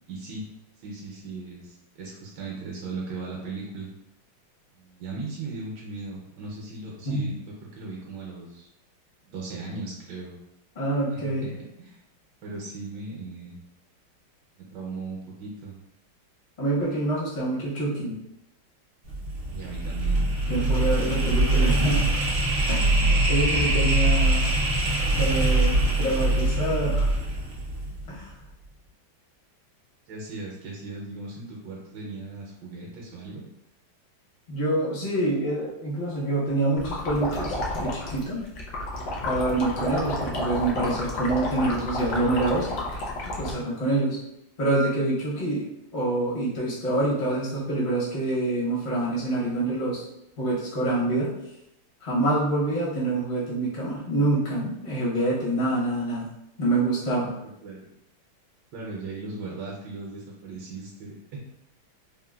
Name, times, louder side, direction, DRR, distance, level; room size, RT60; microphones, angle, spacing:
voice 1, 0.1-0.4 0.8-3.9 4.7-7.4 7.7-8.7 9.3-10.3 11.1-12.0 12.4-13.6 14.6-15.8 19.5-20.3 20.6-21.3 30.1-33.5 57.6-57.9 58.7-61.4, right 3 dB, 75° right, -3 dB, 1.1 m, -38 dB
voice 2, 10.8-11.5 16.6-18.1 20.5-22.1 22.7-24.6 25.2-27.1 28.1-28.3 34.5-38.5 39.2-42.7 43.2-44.2 44.6-45.6 45.9-50.0 50.4-51.3 52.0-56.3 56.6-57.3, right 2 dB, 50° left, -7 dB, 0.5 m, -26 dB
sound 1, 19.0-28.2, right 2 dB, 90° right, 0.6 m, -23 dB
sound 2, 36.8-43.5, left 1 dB, 70° left, 1.0 m, -31 dB
3.7 x 2.1 x 2.2 m, 0.83 s
omnidirectional pair, 2.3 m